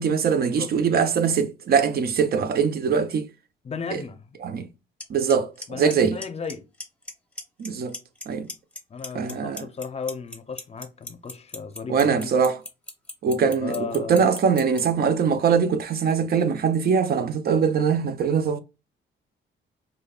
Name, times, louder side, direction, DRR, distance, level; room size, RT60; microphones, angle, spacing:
voice 1, 0.0-3.3 3.9-4.0 4.4-4.7 5.1-6.2 7.6-7.9 8.3-8.5 9.1-9.7 11.9-12.6 13.2-18.6, right 6 dB, 50° right, 0.6 m, -22 dB
voice 2, 3.6-4.2 5.7-6.7 8.9-12.3 13.4-14.3, left 5 dB, 30° left, 0.6 m, -35 dB
Clock, 5.0-5.1 5.3-5.6 5.9-6.5 6.8-7.1 7.4-8.2 8.5-14.8, left 2 dB, 5° left, 0.8 m, -35 dB
5.1 x 2.2 x 2.3 m
cardioid pair, 90°, 20 cm